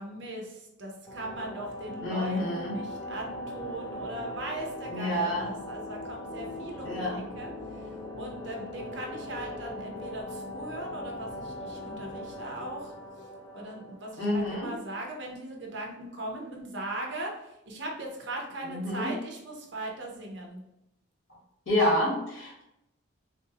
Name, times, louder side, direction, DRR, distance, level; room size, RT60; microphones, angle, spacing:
voice 1, 0.0-7.9 8.2-12.9 13.5-20.6, right 1 dB, 55° right, 0 dB, 0.7 m, -39 dB
sound 1, 1.1-14.6, left 1 dB, 15° left, 0.4 m, -40 dB
voice 2, 2.0-2.8 4.9-5.5 6.8-7.2 14.2-14.7 18.6-19.1 21.7-22.6, left 1 dB, 70° left, -4 dB, 1.3 m, -28 dB
3.2 x 2.6 x 2.8 m, 0.88 s
head